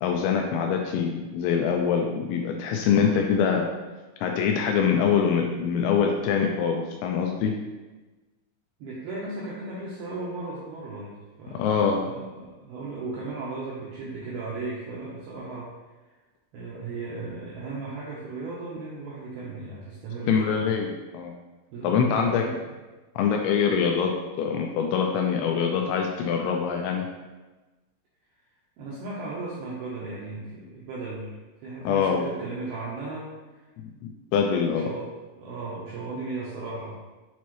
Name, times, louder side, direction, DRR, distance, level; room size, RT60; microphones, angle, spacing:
voice 1, 0.0-3.7 4.2-7.5 11.6-12.1 20.3-21.3 21.8-22.4 23.2-24.1 24.4-27.1 31.8-32.2 34.0-34.9, left 7 dB, 85° left, 2 dB, 2.7 m, -24 dB
voice 2, 8.8-15.7 16.0-16.1 16.5-20.7 21.7-22.7 28.8-33.6 34.7-35.1 35.4-36.9, right 3 dB, 80° right, -6 dB, 2.2 m, -36 dB
8.2 x 4.3 x 3.1 m, 1.2 s
omnidirectional pair, 5.6 m